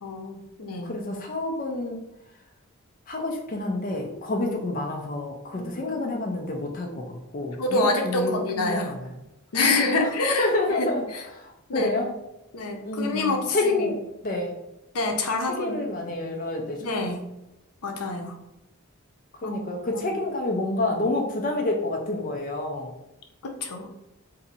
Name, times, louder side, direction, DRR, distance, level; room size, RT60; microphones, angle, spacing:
voice 1, 0.0-1.0 5.5-5.9 7.6-9.0 9.5-10.9 11.1-11.2 11.7-11.9 12.5-13.9 14.9-15.8 16.8-17.3 17.8-18.3 19.4-19.6 19.9-20.2 23.4-23.9, left 3 dB, 90° left, 3 dB, 0.6 m, -27 dB
voice 2, 0.8-2.0 3.1-9.1 9.6-11.0 11.3-12.2 12.8-14.6 15.6-16.9 19.4-22.9, left 2 dB, 40° left, 1 dB, 0.4 m, -28 dB
2.7 x 2.6 x 4.0 m, 0.91 s
head